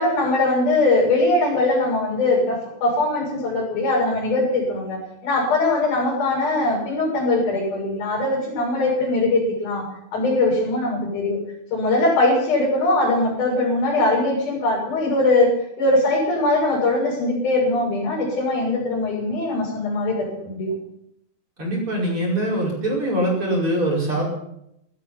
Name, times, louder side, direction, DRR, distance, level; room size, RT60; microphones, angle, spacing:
voice 1, 0.0-9.8 10.1-11.4 11.7-15.5 15.8-20.7, left 2 dB, 70° left, -3 dB, 8.7 m, -21 dB
voice 2, 21.6-24.3, right 1 dB, 35° right, -2 dB, 6.1 m, -23 dB
18.0 x 13.5 x 5.8 m, 0.78 s
omnidirectional pair, 4.5 m